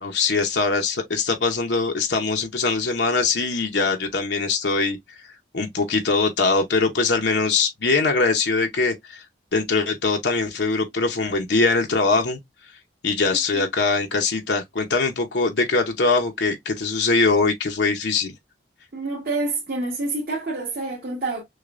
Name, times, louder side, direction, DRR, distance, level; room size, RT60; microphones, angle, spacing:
voice 1, 0.0-5.0 5.5-9.2 9.5-12.4 13.0-18.3, left 4 dB, 65° left, 0.7 m, -22 dB
voice 2, 18.9-21.4, right 2 dB, 50° right, 1.6 m, -27 dB
6.3 x 2.2 x 2.4 m
head